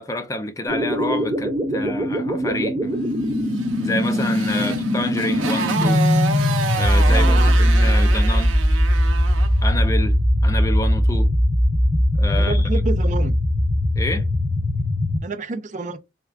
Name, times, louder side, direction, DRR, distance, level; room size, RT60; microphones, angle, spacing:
voice 1, 0.0-3.0 3.8-6.0 6.7-8.6 9.6-11.3 12.2-12.7 14.0-14.3, left 1 dB, 15° left, 0.4 m, -28 dB
sound 1, 0.7-15.2, equal, 15° right, 1.3 m, -20 dB
Motorcycle, 3.5-9.6, right 5 dB, 85° right, 0.6 m, -29 dB
voice 2, 7.1-8.2 12.4-13.4 15.2-16.0, right 3 dB, 40° right, 0.5 m, -29 dB
3.5 x 2.3 x 3.3 m
head